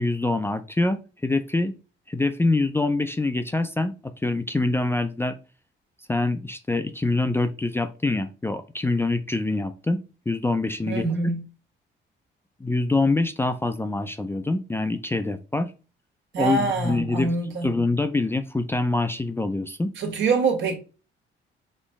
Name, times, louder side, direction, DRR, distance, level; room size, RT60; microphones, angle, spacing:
voice 1, 0.0-1.7 2.1-5.4 6.1-10.0 10.3-11.0 12.6-15.7 16.4-17.4 17.6-19.9, left 2 dB, 10° left, 0.4 m, -25 dB
voice 2, 10.9-11.4 16.3-17.7 20.0-20.8, right 4 dB, 70° right, 1.6 m, -24 dB
4.4 x 3.0 x 3.5 m
cardioid pair, 90°, 20 cm